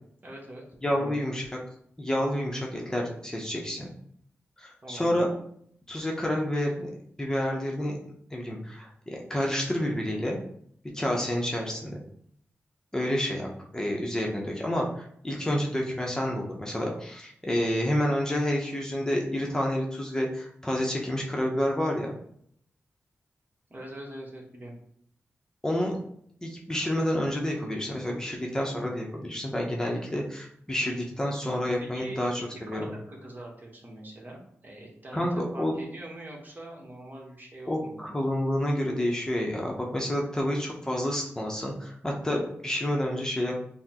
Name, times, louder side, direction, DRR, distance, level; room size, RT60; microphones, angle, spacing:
voice 1, 0.2-0.6 1.0-1.2 4.8-5.3 23.7-24.7 31.8-35.3 35.5-38.1, right 1 dB, 40° right, -1 dB, 1.1 m, -43 dB
voice 2, 0.8-1.5 2.0-3.9 4.6-5.3 5.9-6.9 7.2-8.0 8.3-10.4 10.9-12.0 12.9-22.1 25.6-26.0 26.4-32.9 35.1-35.8 37.7-43.6, left 1 dB, 15° left, -1 dB, 0.7 m, -29 dB
5.5 x 2.1 x 2.9 m, 0.67 s
cardioid pair, 65°, 5 cm